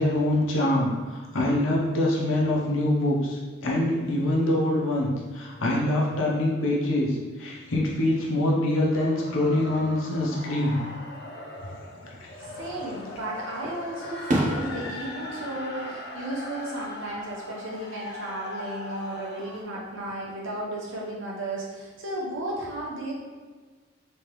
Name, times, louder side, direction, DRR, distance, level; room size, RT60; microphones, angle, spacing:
voice 1, 0.0-10.8 12.2-12.3, left 1 dB, 85° left, -4 dB, 0.8 m, -25 dB
sound 1, 8.6-19.6, left 1 dB, 55° left, 0.5 m, -40 dB
voice 2, 12.4-23.1, right 1 dB, 75° right, -4 dB, 0.9 m, -34 dB
Fireworks, 12.5-13.2 13.6-16.8 17.1-17.6 19.2-20.0, right 1 dB, 40° right, 0.4 m, -32 dB
3.3 x 3.1 x 3.1 m, 1.4 s
head